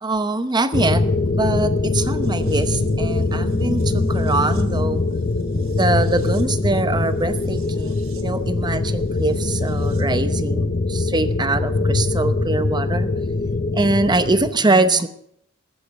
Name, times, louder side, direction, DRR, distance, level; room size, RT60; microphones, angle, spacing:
voice 1, 0.0-5.0 5.7-13.1 13.7-15.1, right 2 dB, 20° right, 11 dB, 0.8 m, -23 dB
sound 1, 0.7-14.5, left 3 dB, 40° left, 0.6 m, -22 dB
sound 2, 2.2-10.1 10.4-10.5, right 2 dB, 70° right, 1.7 m, -37 dB
14.5 x 8.5 x 7.8 m, 0.70 s
head